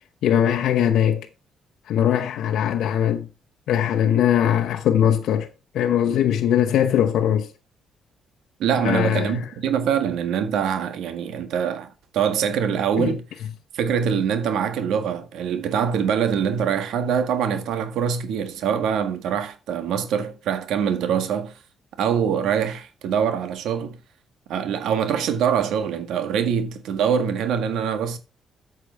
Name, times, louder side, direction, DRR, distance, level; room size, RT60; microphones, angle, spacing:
voice 1, 0.2-1.3 1.9-3.3 3.7-5.5 5.7-7.5 8.8-9.5 13.0-13.1, left 10 dB, 80° left, 0.9 m, -20 dB
voice 2, 8.6-13.2 13.7-21.5 22.0-24.0 24.5-28.2, right 7 dB, 80° right, 1.7 m, -24 dB
8.4 x 6.8 x 4.6 m
cardioid pair, 90°, 0 cm